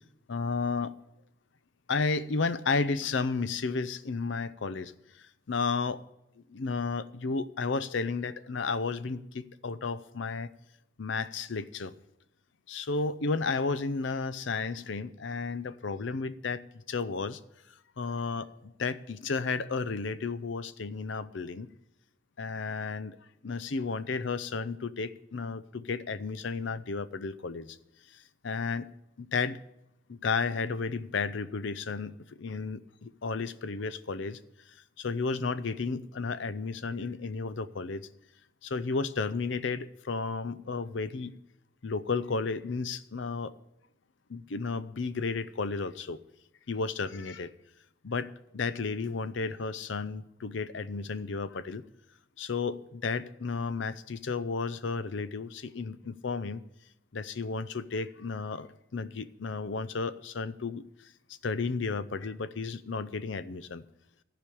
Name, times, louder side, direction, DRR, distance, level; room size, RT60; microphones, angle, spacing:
voice 1, 0.3-0.9 1.9-6.0 6.5-10.5 11.0-11.9 12.7-17.4 18.0-21.7 22.4-23.2 23.4-27.8 28.1-28.9 29.2-29.6 30.1-34.4 35.0-38.1 38.6-41.3 41.8-43.5 44.3-46.2 46.7-47.5 48.0-51.8 52.4-56.6 57.1-60.8 61.4-63.8, left 4 dB, 65° left, 14 dB, 0.6 m, -33 dB
14.5 x 5.0 x 8.5 m, 0.84 s
head